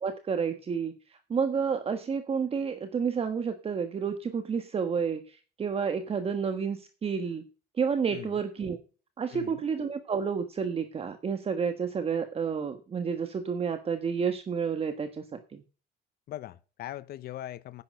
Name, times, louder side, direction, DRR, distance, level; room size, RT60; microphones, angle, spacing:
voice 1, 0.0-7.4 7.8-8.8 9.2-15.6, right 6 dB, 35° right, 1.4 m, -30 dB
voice 2, 9.3-9.6 16.3-17.8, left 13 dB, 65° left, 0.8 m, -40 dB
10.5 x 8.8 x 5.5 m
cardioid pair, 110°, 17 cm